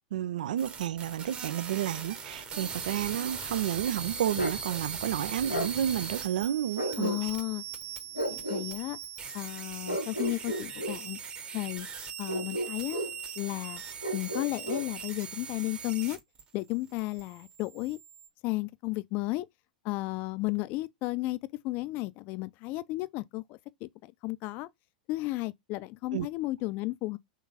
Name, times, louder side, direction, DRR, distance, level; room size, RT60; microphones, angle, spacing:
voice 1, 0.1-7.3 26.1-26.3, right 11 dB, 60° right, 0.3 m, -31 dB
sound 1, 0.6-16.4 16.7-18.3, right 6 dB, 25° right, 1.0 m, -40 dB
Bark, 4.3-4.6 5.5-5.7 6.8-7.5 8.1-8.7 9.9-11.0 12.3-13.2 14.0-14.9, right 1 dB, 85° left, 1.4 m, -33 dB
voice 2, 7.0-7.6 8.3-9.0 9.3-11.2 11.5-11.9 12.2-13.0 13.4-13.8 14.1-16.2 16.5-18.0 18.4-19.5 19.8-24.7 25.1-27.2, left 20 dB, 40° left, 0.4 m, -33 dB
3.8 x 3.2 x 4.1 m
figure-of-eight pair, 95°, 5 cm